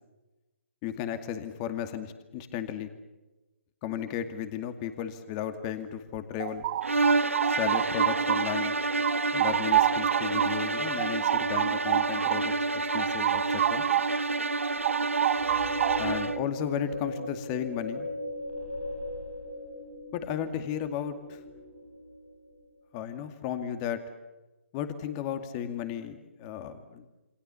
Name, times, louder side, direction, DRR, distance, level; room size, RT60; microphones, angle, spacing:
voice 1, 0.8-2.9 3.8-6.7 7.5-8.8 9.3-13.8 16.0-18.1 20.1-21.4 22.9-24.0 24.7-27.1, left 9 dB, 25° left, 9 dB, 2.3 m, -34 dB
sound 1, 6.2-8.7 9.0-14.2 14.5-16.3, right 13 dB, 35° right, 1.1 m, -29 dB
sound 2, 6.8-16.5, right 3 dB, 90° right, 0.9 m, -29 dB
sound 3, 15.3-22.7, left 1 dB, 60° left, 4.5 m, -39 dB
28.0 x 26.0 x 7.1 m, 1.1 s
figure-of-eight pair, 140°, 7 cm